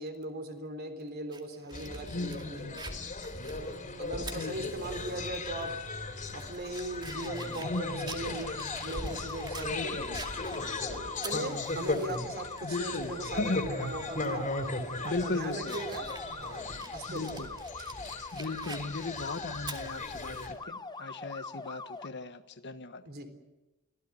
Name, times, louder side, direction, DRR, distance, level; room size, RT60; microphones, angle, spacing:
voice 1, 0.0-2.8 3.5-5.7 6.3-10.2 10.9-14.5 15.0-16.1 16.4-17.6 23.1-23.3, right 1 dB, 50° right, 7 dB, 3.6 m, -39 dB
Fire, 1.3-5.2 5.6-5.7 6.2-9.7 10.1-12.2 12.6-12.7 14.2-14.4 14.9-20.5, right 3 dB, 20° right, 2.4 m, -48 dB
sound 1, 1.7-20.5, left 3 dB, 40° left, 3.3 m, -38 dB
voice 2, 2.1-2.8 4.3-4.7 7.6-8.1 9.7-10.2 12.6-13.1 13.4-13.7 15.0-15.8 17.1-17.5 18.3-23.0, left 2 dB, 55° left, 10 dB, 1.4 m, -36 dB
sound 2, 7.1-22.1, left 3 dB, 20° left, 0.9 m, -42 dB
24.5 x 16.5 x 9.7 m, 1.1 s
head